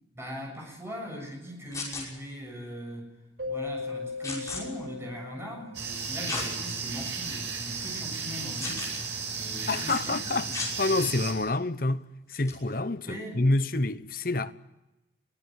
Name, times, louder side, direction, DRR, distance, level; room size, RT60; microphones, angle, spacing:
voice 1, 0.2-3.1 3.4-10.2 10.5-10.6 13.0-13.5, equal, 15° right, 7.4 m, -40 dB
sound 1, 1.7-2.0 4.2-4.6 6.2-6.5 7.1-7.2 8.6-9.0 10.5-10.7 12.3-12.5, left 4 dB, 15° left, 6.0 m, -34 dB
Keyboard (musical), 3.4-6.1, left 4 dB, 60° right, 5.9 m, -37 dB
sound 2, 5.7-11.3, right 5 dB, 80° right, 6.3 m, -34 dB
voice 2, 9.7-12.0 12.3-14.5, left 2 dB, 50° left, 0.9 m, -28 dB
23.5 x 16.0 x 9.4 m
head